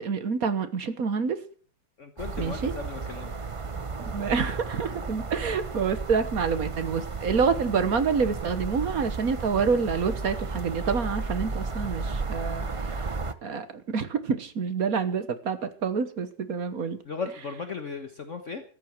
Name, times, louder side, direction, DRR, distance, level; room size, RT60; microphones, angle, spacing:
voice 1, 0.0-1.4 2.4-2.7 4.0-12.9 13.4-17.0, right 5 dB, 55° right, 12 dB, 1.7 m, -27 dB
voice 2, 2.0-3.3 17.0-18.6, left 4 dB, 45° left, 7 dB, 1.5 m, -36 dB
sound 1, 2.2-13.3, right 3 dB, 35° right, 0.5 m, -33 dB
14.0 x 10.5 x 7.6 m, 0.43 s
omnidirectional pair, 1.9 m